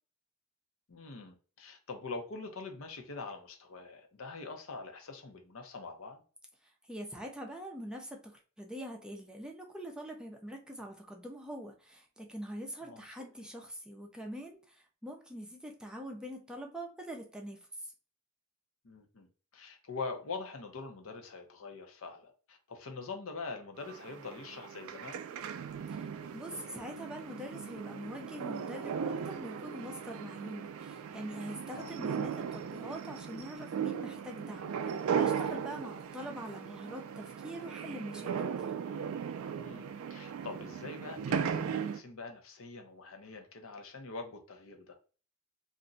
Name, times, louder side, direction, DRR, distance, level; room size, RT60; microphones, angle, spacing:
voice 1, 0.9-6.2 12.8-13.0 18.8-19.3 19.5-25.2 31.7-31.9 39.5-44.9, left 4 dB, 70° left, 0.7 m, -44 dB
voice 2, 6.9-17.6 17.8-17.9 25.9-26.0 26.3-38.3, equal, 5° right, 0.5 m, -44 dB
sound 1, 23.8-42.0, right 7 dB, 70° right, 0.3 m, -37 dB
2.5 x 2.1 x 3.7 m
head